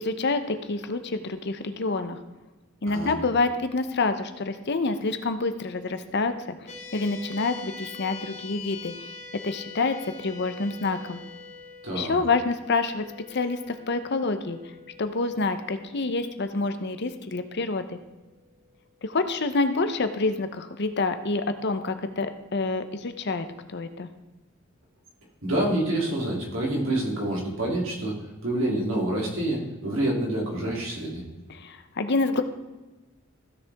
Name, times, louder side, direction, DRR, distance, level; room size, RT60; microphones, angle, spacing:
voice 1, 0.0-2.2 2.8-6.3 6.6-8.9 9.4-11.2 11.9-13.0 13.3-14.6 15.0-18.0 19.0-24.1 31.5-32.4, left 3 dB, 55° left, 9 dB, 0.8 m, -27 dB
sound 1, 6.7-19.3, left 5 dB, 35° left, 1.1 m, -45 dB
voice 2, 25.4-28.2 28.4-31.2, right 1 dB, 70° right, -2 dB, 2.9 m, -27 dB
15.5 x 6.8 x 3.5 m, 1.1 s
head